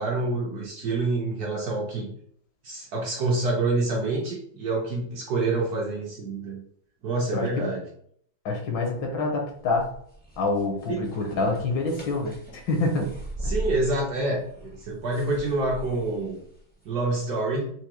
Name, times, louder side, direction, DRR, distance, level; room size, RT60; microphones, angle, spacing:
voice 1, 0.0-2.1 2.6-6.6 7.0-7.8 10.9-11.0 13.5-16.4 16.8-17.7, right 2 dB, 65° right, -1 dB, 1.0 m, -27 dB
voice 2, 7.3-7.7 8.4-9.9 10.4-13.1 13.4-13.5, left 3 dB, 70° left, 1 dB, 1.5 m, -27 dB
sound 1, 9.5-16.9, right 1 dB, 10° left, 0.5 m, -39 dB
4.7 x 2.1 x 2.9 m, 0.64 s
omnidirectional pair, 2.1 m